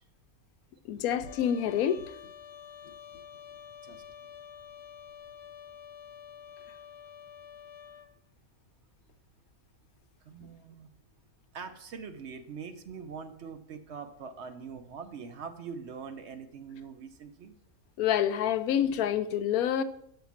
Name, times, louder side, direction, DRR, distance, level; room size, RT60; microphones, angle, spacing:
voice 1, 0.9-2.0 18.0-19.8, left 9 dB, 85° left, 1.1 m, -27 dB
Trumpet, 1.2-8.1, left 8 dB, 65° left, 0.8 m, -48 dB
voice 2, 10.2-10.9 11.5-17.5, right 6 dB, 60° right, 0.8 m, -43 dB
6.0 x 5.7 x 7.1 m
omnidirectional pair, 1.5 m